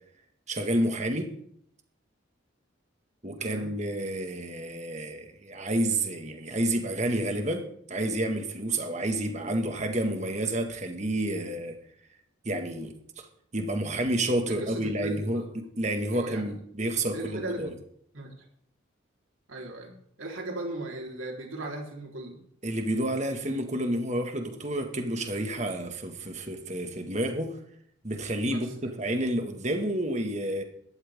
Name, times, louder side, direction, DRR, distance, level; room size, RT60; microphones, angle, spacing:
voice 1, 0.5-1.3 3.2-11.8 12.5-13.3 13.5-17.7 22.6-27.6 28.0-30.6, right 1 dB, 35° right, 5 dB, 1.8 m, -30 dB
voice 2, 3.4-3.7 14.5-15.5 16.1-16.5 17.1-17.8 18.1-18.3 19.5-22.4 28.5-28.7, right 2 dB, 80° right, 0 dB, 4.0 m, -37 dB
16.5 x 12.5 x 3.7 m, 0.68 s
head